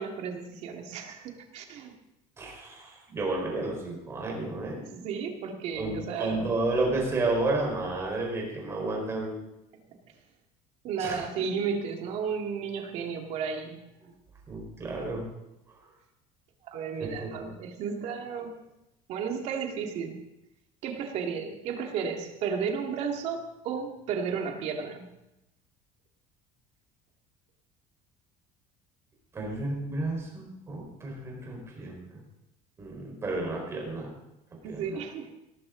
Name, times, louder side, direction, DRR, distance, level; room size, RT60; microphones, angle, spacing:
voice 1, 0.0-1.9 4.9-6.5 10.8-13.8 16.7-18.5 19.1-20.2 20.8-25.1 34.6-35.3, right 6 dB, 50° right, 3 dB, 2.3 m, -33 dB
voice 2, 2.4-5.0 5.8-9.4 11.0-11.2 14.5-15.3 17.0-17.5 29.3-32.2 32.8-34.1 34.6-35.0, right 2 dB, 20° right, -1 dB, 4.6 m, -32 dB
18.0 x 14.0 x 3.9 m, 0.91 s
cardioid pair, 175°, 15 cm